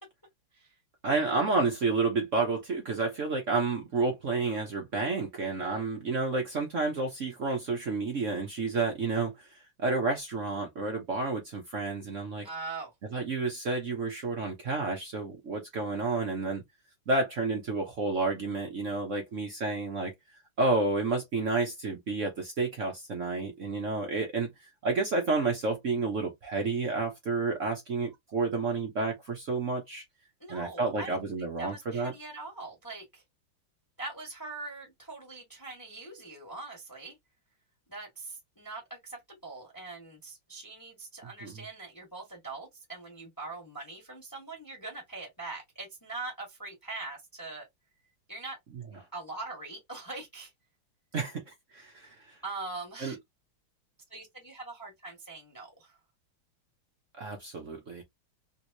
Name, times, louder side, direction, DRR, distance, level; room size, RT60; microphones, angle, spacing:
voice 1, 1.0-12.5 13.1-16.6 17.1-20.1 20.6-24.5 24.8-30.0 30.5-32.1 41.4-41.5 51.1-52.3 53.0-53.2 57.2-58.0, right 3 dB, 60° right, 0.8 m, -30 dB
voice 2, 12.4-12.9 30.4-33.2 34.0-37.1 37.9-47.7 48.3-48.6 49.1-50.5 52.4-53.1 54.1-56.0, right 3 dB, 10° left, 1.1 m, -42 dB
3.5 x 3.0 x 2.6 m
omnidirectional pair, 2.4 m